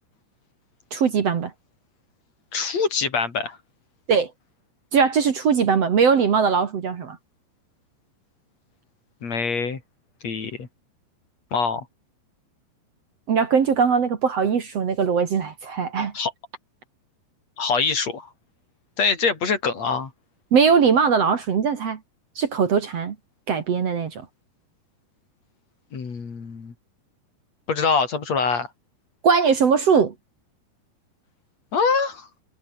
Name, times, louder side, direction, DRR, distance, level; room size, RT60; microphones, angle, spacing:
voice 1, 0.9-1.5 4.1-4.3 4.9-7.2 13.3-16.1 20.5-22.0 22.4-23.2 23.5-24.3 29.2-30.1, right 6 dB, 50° right, 2.0 m, -20 dB
voice 2, 2.5-3.6 9.2-9.8 10.2-10.7 11.5-11.9 16.1-16.3 17.6-18.3 19.0-20.1 25.9-26.7 27.7-28.7 31.7-32.3, left 5 dB, 40° left, 4.2 m, -24 dB
omnidirectional pair, 5.2 m